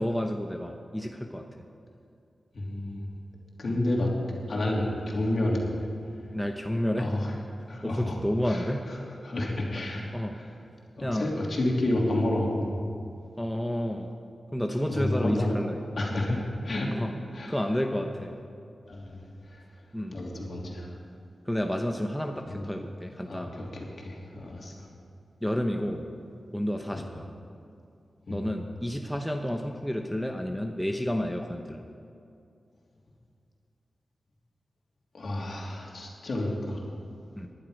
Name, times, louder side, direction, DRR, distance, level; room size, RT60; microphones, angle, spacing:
voice 1, 0.0-1.5 3.7-3.8 6.3-7.1 7.8-8.9 10.1-10.4 11.0-11.3 13.4-14.1 14.5-15.8 17.0-17.1 17.5-18.3 19.9-20.2 21.5-23.7 25.4-26.1 26.5-27.3 28.3-31.8 37.4-37.5, equal, 5° left, 3 dB, 0.8 m, -30 dB
voice 2, 2.5-3.0 3.6-4.1 4.5-5.9 6.9-7.3 7.7-8.2 8.4-10.5 11.0-12.8 14.9-15.6 16.0-16.9 17.3-17.6 18.9-19.6 20.1-21.0 22.5-22.7 23.3-24.9 26.9-27.1 28.3-28.5 35.1-36.8, left 1 dB, 60° left, -2 dB, 3.0 m, -30 dB
19.5 x 11.0 x 5.1 m, 2.5 s
wide cardioid pair, 100°, 0 cm